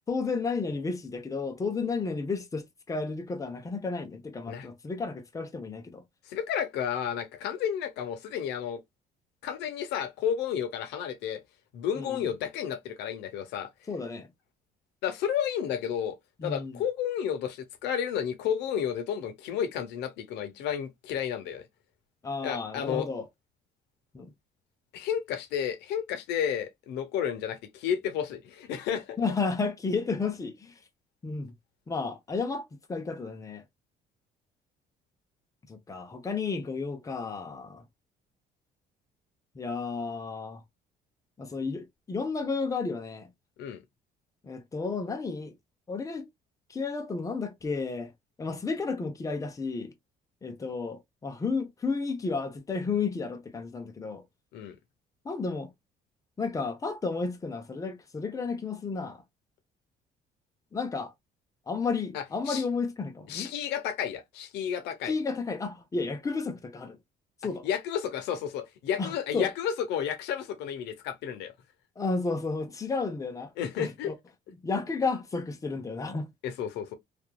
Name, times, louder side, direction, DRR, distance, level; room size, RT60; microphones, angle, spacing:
voice 1, 0.1-6.0 11.9-12.2 13.9-14.3 16.4-16.8 22.2-23.3 24.1-24.3 29.2-30.7 31.2-31.5 31.9-33.6 35.7-37.8 39.5-40.6 41.4-43.3 44.4-45.5 45.9-46.3 46.7-48.1 48.4-49.9 50.4-54.2 55.2-55.7 56.4-59.2 60.7-61.1 61.7-63.5 65.1-67.0 67.4-67.7 69.0-69.5 72.0-73.5 73.8-74.1 74.6-76.3, left 4 dB, 20° left, 0.7 m, -32 dB
voice 2, 6.3-8.8 9.4-11.4 11.7-13.7 15.0-16.2 16.4-21.6 22.4-23.1 24.9-29.2 43.6-43.8 54.5-54.8 62.1-62.6 63.3-65.1 67.6-71.5 73.6-74.1 76.4-77.0, left 8 dB, 85° left, 0.8 m, -32 dB
2.9 x 2.4 x 2.2 m
cardioid pair, 110°, 17 cm